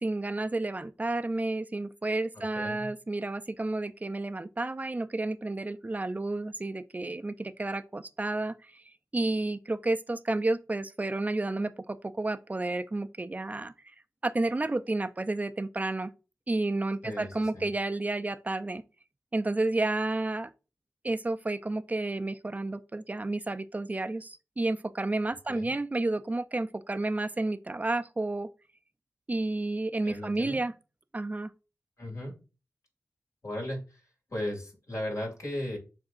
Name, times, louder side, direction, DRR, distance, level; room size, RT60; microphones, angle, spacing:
voice 1, 0.0-8.8 9.1-13.7 14.2-16.1 16.5-18.8 19.3-20.5 21.0-28.5 29.3-30.7 31.1-31.5, right 2 dB, 25° right, 0.4 m, -31 dB
voice 2, 2.3-2.9 17.0-17.7 25.5-25.7 30.0-30.6 32.0-32.3 33.4-34.0 34.3-35.8, left 1 dB, 60° left, 2.1 m, -36 dB
7.3 x 2.7 x 2.4 m
cardioid pair, 45°, 6 cm